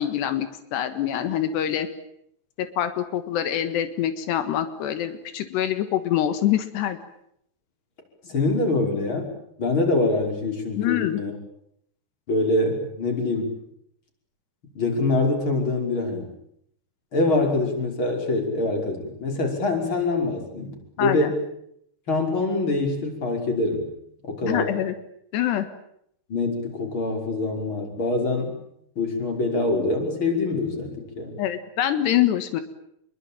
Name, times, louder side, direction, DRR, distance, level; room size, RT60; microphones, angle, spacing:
voice 1, 0.0-1.9 2.6-7.0 10.8-11.2 21.0-21.3 24.4-24.9 25.3-25.7 31.4-32.6, left 11 dB, 90° left, 10 dB, 3.8 m, -25 dB
voice 2, 8.2-9.3 9.6-11.3 12.3-13.6 14.7-16.3 17.1-21.4 22.1-23.9 24.2-24.7 26.3-28.6 29.0-31.4, left 2 dB, 30° left, 3 dB, 6.1 m, -24 dB
27.5 x 22.5 x 9.1 m, 0.73 s
omnidirectional pair, 4.7 m